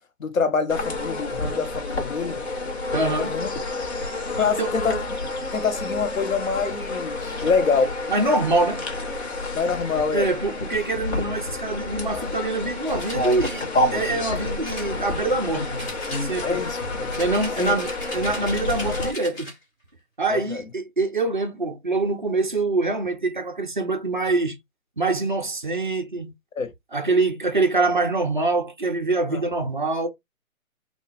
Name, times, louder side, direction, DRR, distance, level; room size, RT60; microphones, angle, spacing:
voice 1, 0.2-2.4 3.0-3.5 4.4-4.9 5.5-8.0 9.5-10.3 16.4-17.1 17.6-17.7 20.3-20.6 26.6-26.7 29.3-29.4, left 5 dB, 65° left, 0.9 m, -25 dB
sound 1, 0.7-19.1, left 2 dB, 50° left, 1.2 m, -29 dB
voice 2, 2.9-3.4 4.4-4.7 8.1-8.8 10.1-15.7 16.2-16.6 17.2-19.5 20.2-24.6 25.0-26.3 26.9-30.1, right 3 dB, 35° right, 0.4 m, -24 dB
sound 2, 12.9-13.6 14.6-15.4 15.8-16.6 17.1-19.6, left 1 dB, 20° left, 1.2 m, -38 dB
3.4 x 2.2 x 3.3 m
figure-of-eight pair, 155°, 42 cm